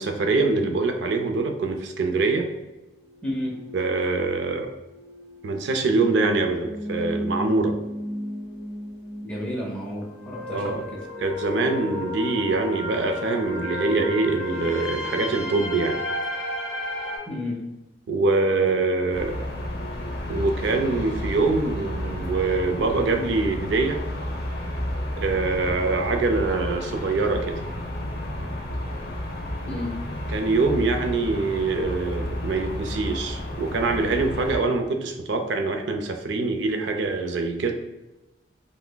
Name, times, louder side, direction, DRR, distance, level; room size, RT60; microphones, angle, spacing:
voice 1, 0.0-2.5 3.7-4.7 5.4-7.7 10.5-10.8 11.2-16.0 18.1-19.3 20.3-24.0 25.2-27.6 30.3-37.7, right 3 dB, 75° right, 5 dB, 0.4 m, -24 dB
sound 1, 2.5-17.2, left 1 dB, 35° left, 1.4 m, -34 dB
voice 2, 3.2-3.5 9.2-10.8 13.8-13.9 17.3-17.6 29.6-29.9, left 1 dB, 5° left, -4 dB, 0.6 m, -31 dB
sound 2, 19.1-34.6, left 1 dB, 55° left, 0.7 m, -32 dB
5.6 x 2.1 x 2.2 m, 1.0 s
head